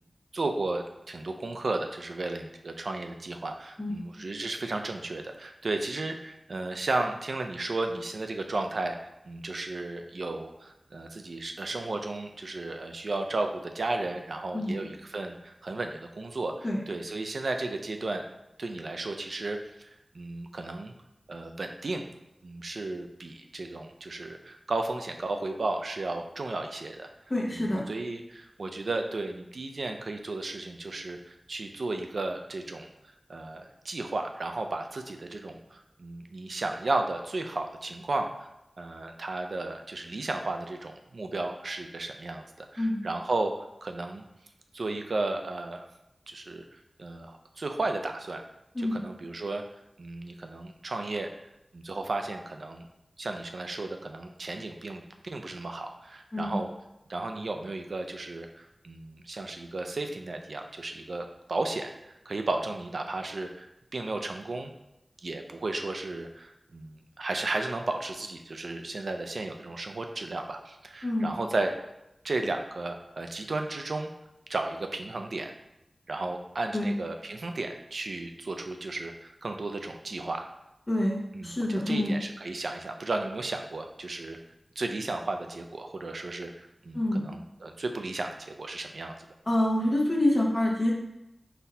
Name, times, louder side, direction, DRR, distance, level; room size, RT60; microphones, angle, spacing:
voice 1, 0.3-18.2 18.6-20.9 21.3-22.1 22.4-27.1 27.5-32.9 33.3-38.5 38.8-44.2 44.7-45.8 46.3-48.4 48.8-49.6 50.0-51.3 51.7-52.9 53.2-56.7 57.1-63.7 63.9-64.7 65.2-71.9 72.2-74.1 74.5-75.5 76.1-80.4 81.3-84.4 84.8-89.2, right 2 dB, 75° right, 5 dB, 0.4 m, -34 dB
voice 2, 27.3-27.8 42.8-43.0 48.7-49.0 56.3-56.6 71.0-71.3 76.7-76.9 80.9-82.1 86.9-87.3 89.5-90.9, left 1 dB, 30° left, -3 dB, 1.0 m, -27 dB
4.0 x 2.7 x 4.1 m, 0.88 s
wide cardioid pair, 70°, 0 cm